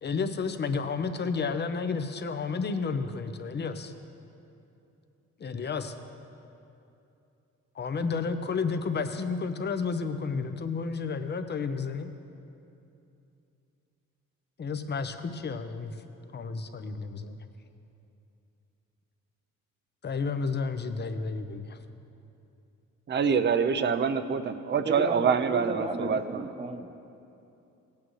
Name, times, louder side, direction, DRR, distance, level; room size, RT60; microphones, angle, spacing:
voice 1, 0.0-3.9 5.4-5.9 7.7-12.1 14.6-15.9 16.3-17.4 20.0-21.8, left 5 dB, 35° left, 8 dB, 0.7 m, -31 dB
voice 2, 23.1-26.5, right 6 dB, 35° right, 10 dB, 0.6 m, -26 dB
voice 3, 24.8-26.9, right 2 dB, 20° right, 4 dB, 1.0 m, -33 dB
17.5 x 8.5 x 3.2 m, 2.7 s
cardioid pair, 90°, 30 cm